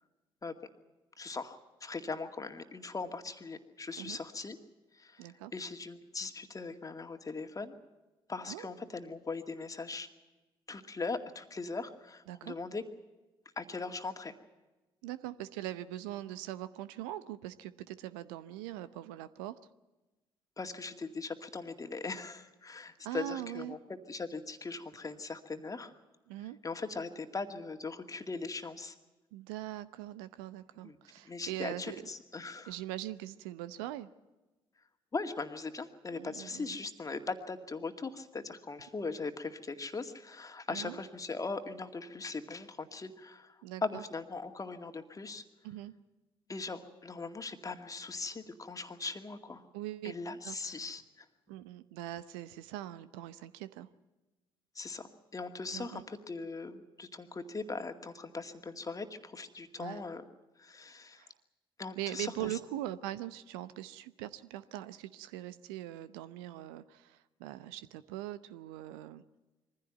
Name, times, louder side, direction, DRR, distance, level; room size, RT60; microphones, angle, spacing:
voice 1, 1.2-4.6 4.9-7.8 8.3-10.1 10.7-12.8 13.6-14.3 20.6-23.8 24.1-25.9 26.6-29.0 30.8-31.0 31.2-32.8 35.1-45.5 46.5-49.6 50.0-51.3 54.7-60.2 60.6-61.3 61.8-62.6, left 3 dB, 30° left, 6 dB, 2.2 m, -40 dB
voice 2, 5.2-5.5 8.5-8.7 12.3-12.6 15.0-19.6 23.0-23.8 26.3-26.6 29.3-32.0 32.7-34.1 36.1-36.8 40.7-41.0 43.6-44.0 45.6-45.9 49.7-50.1 50.4-50.8 51.5-53.9 55.7-56.0 59.8-60.0 61.2-61.3 62.0-69.2, right 14 dB, 70° right, 15 dB, 0.8 m, -41 dB
23.0 x 15.5 x 9.2 m, 1.1 s
figure-of-eight pair, 45°, 12 cm